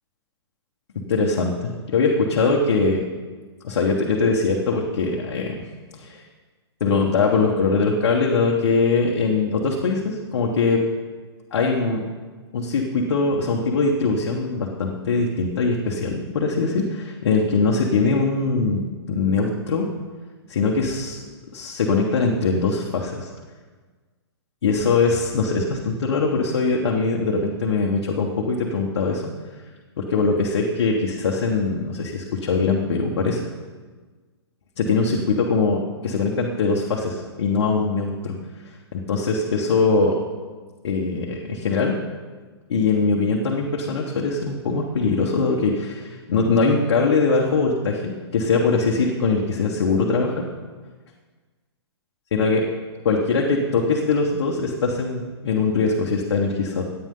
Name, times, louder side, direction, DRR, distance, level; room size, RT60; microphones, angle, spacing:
voice 1, 1.1-3.0 3.6-5.5 5.9-6.2 6.8-10.8 11.5-12.0 12.5-19.9 20.5-21.2 21.5-23.3 24.6-29.2 30.0-33.4 34.8-38.3 38.9-40.2 40.8-41.9 42.7-50.4 52.3-52.6 53.0-56.8, left 4 dB, 60° left, -2 dB, 1.5 m, -22 dB
15.0 x 9.1 x 3.9 m, 1.4 s
hypercardioid pair, 170°, 14 cm